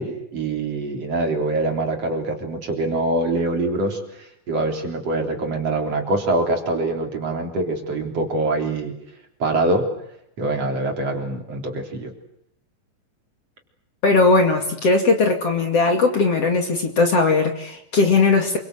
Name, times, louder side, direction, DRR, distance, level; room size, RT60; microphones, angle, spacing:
voice 1, 0.0-8.9 9.4-9.9 10.4-12.1, right 2 dB, 45° right, 3 dB, 4.6 m, -24 dB
voice 2, 14.0-18.6, left 3 dB, 45° left, 4 dB, 3.2 m, -18 dB
27.5 x 24.0 x 8.0 m, 0.76 s
omnidirectional pair, 4.2 m